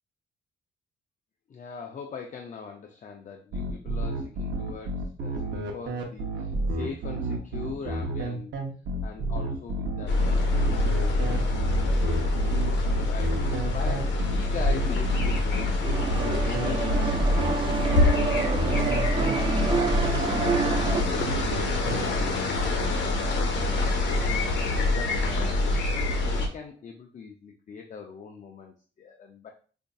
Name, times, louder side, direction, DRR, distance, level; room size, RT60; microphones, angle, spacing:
voice 1, 1.5-8.5 9.0-12.2 12.7-20.6 21.0-29.5, left 5 dB, 40° left, 2 dB, 0.5 m, -41 dB
sound 1, 3.5-22.0, right 2 dB, 65° right, 0.8 m, -31 dB
sound 2, 10.1-26.5, left 2 dB, 65° left, 0.9 m, -26 dB
sound 3, 15.8-21.0, right 5 dB, 25° right, 0.3 m, -28 dB
5.0 x 2.6 x 2.3 m, 0.38 s
cardioid pair, 90°, 20 cm